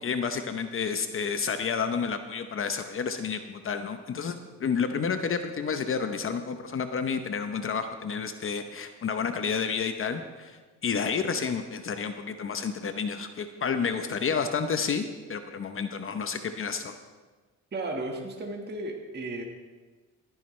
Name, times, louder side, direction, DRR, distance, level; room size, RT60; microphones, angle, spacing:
voice 1, 0.0-16.9, left 6 dB, 45° left, 8 dB, 0.8 m, -30 dB
voice 2, 17.7-19.4, right 2 dB, 35° right, 1 dB, 1.6 m, -34 dB
17.5 x 10.5 x 3.2 m, 1.3 s
cardioid pair, 90°, 30 cm